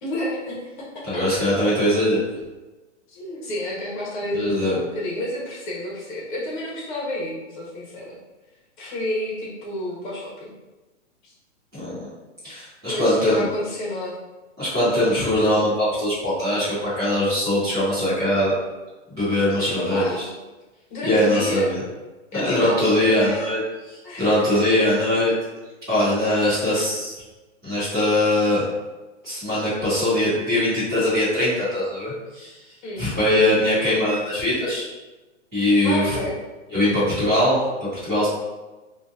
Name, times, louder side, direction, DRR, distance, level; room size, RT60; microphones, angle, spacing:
voice 1, 0.0-1.0 3.1-8.2 8.8-10.5 11.2-11.3 12.8-14.1 19.8-20.3 20.9-21.7 22.3-23.5 24.0-24.3 32.8-33.1 35.8-36.3, left 1 dB, 40° left, -4 dB, 1.1 m, -30 dB
voice 2, 1.1-2.4 4.3-4.8 11.7-12.1 12.4-13.5 14.6-18.5 19.1-20.3 21.0-21.8 22.3-23.6 23.9-25.3 25.9-27.1 27.6-28.6 29.2-32.5 33.0-34.8 35.5-36.2 36.7-37.6 38.0-38.3, left 1 dB, 5° right, -17 dB, 0.3 m, -21 dB
3.8 x 2.5 x 2.5 m, 1.2 s
hypercardioid pair, 160°, 36 cm